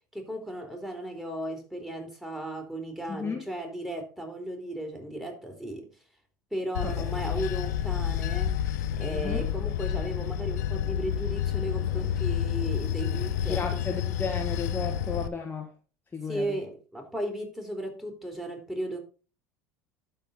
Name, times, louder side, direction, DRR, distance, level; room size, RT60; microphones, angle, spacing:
voice 1, 0.1-5.9 6.5-8.6 9.0-13.8 16.3-19.0, right 1 dB, 5° right, 3 dB, 3.0 m, -35 dB
voice 2, 3.1-3.5 6.8-7.4 9.1-9.5 13.5-15.7 16.1-16.6, left 5 dB, 20° left, 2 dB, 1.4 m, -34 dB
Bell / Train, 6.7-15.3, left 10 dB, 80° left, 0.6 m, -29 dB
12.0 x 4.1 x 4.1 m, 0.35 s
hypercardioid pair, 75°, 9 cm